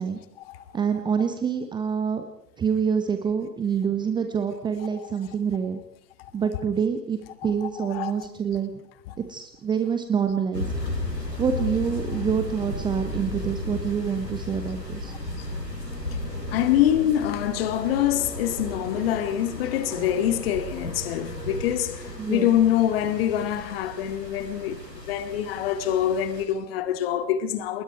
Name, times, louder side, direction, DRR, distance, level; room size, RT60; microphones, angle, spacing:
voice 1, 0.7-2.2 2.6-5.8 6.3-8.7 9.2-10.7 11.4-15.1 22.2-22.5, right 7 dB, 10° right, 1.1 m, -26 dB
voice 2, 4.8-5.3 6.2-6.6 7.3-8.3 9.1-9.2 15.1-15.6 16.5-27.8, left 11 dB, 35° left, 2.2 m, -26 dB
sound 1, 10.5-26.4, left 1 dB, 85° left, 5.7 m, -34 dB
29.0 x 20.5 x 4.7 m
figure-of-eight pair, 110°, 48 cm